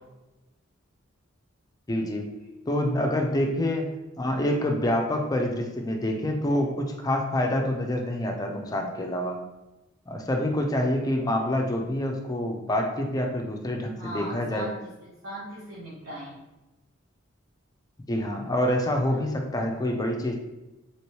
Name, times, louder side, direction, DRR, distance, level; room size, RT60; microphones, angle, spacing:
voice 1, 1.9-2.3 2.7-3.9 4.2-9.4 10.1-14.7 18.1-20.4, left 1 dB, 20° left, 2 dB, 0.4 m, -27 dB
voice 2, 14.0-16.4, equal, 75° right, -8 dB, 1.0 m, -39 dB
3.0 x 3.0 x 3.0 m, 1.0 s
head